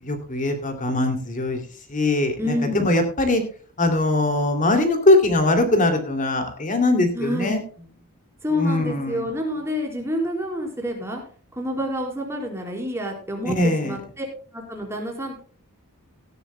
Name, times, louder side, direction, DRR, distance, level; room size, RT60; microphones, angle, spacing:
voice 1, 0.0-1.6 1.9-3.4 3.8-7.6 8.5-9.3 13.5-14.0, left 2 dB, 35° left, 6 dB, 2.6 m, -21 dB
voice 2, 2.4-2.8 7.1-7.6 8.4-11.2 11.5-14.3 14.5-15.4, left 1 dB, 10° right, 0 dB, 4.3 m, -28 dB
18.0 x 12.5 x 2.2 m, 0.41 s
head